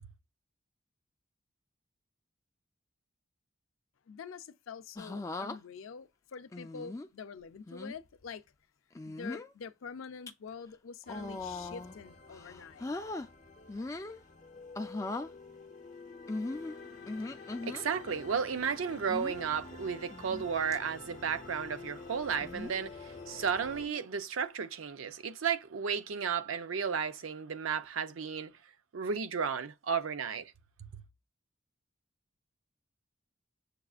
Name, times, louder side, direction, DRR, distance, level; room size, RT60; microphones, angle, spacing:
voice 1, 4.1-8.4 9.0-12.9, left 5 dB, 85° left, 0.5 m, -46 dB
sound 1, 5.0-5.6 6.5-7.1 7.7-7.9 8.9-9.5 10.0-10.3 11.0-12.0 12.3-13.3 13.7-14.2 14.7-15.3 16.3-17.8 19.1-19.5 20.1-20.4 20.7-20.8 22.4-22.8 23.9-24.2, left 2 dB, 15° left, 0.3 m, -39 dB
sound 2, 11.1-23.9, left 3 dB, 40° left, 0.7 m, -49 dB
voice 2, 17.6-28.5 28.9-30.5 30.9-31.0, right 6 dB, 85° right, 0.5 m, -33 dB
6.7 x 2.4 x 2.4 m
head